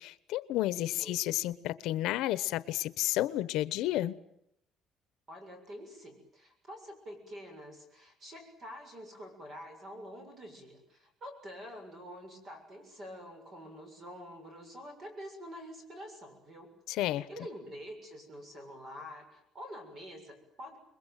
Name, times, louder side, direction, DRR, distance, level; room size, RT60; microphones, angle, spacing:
voice 1, 0.0-4.1 16.9-17.3, left 15 dB, 70° left, 15 dB, 1.1 m, -31 dB
voice 2, 0.7-1.2 5.3-20.8, equal, 30° right, 6 dB, 7.0 m, -47 dB
28.0 x 22.0 x 9.3 m, 0.76 s
cardioid pair, 175°, 0 cm